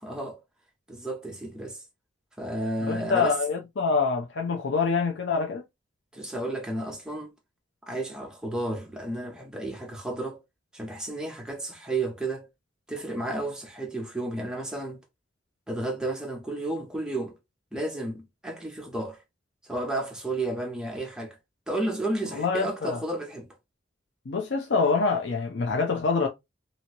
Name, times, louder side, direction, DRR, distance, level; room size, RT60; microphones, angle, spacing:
voice 1, 0.0-0.4 0.9-1.8 2.4-3.4 6.1-7.3 7.8-10.4 10.7-12.5 12.9-15.0 15.7-17.4 17.7-19.2 19.7-21.4 21.7-23.5, right 2 dB, 5° right, 0.7 m, -32 dB
voice 2, 2.9-5.6 22.3-23.0 24.3-26.3, left 4 dB, 65° left, 0.5 m, -25 dB
2.8 x 2.7 x 2.8 m
head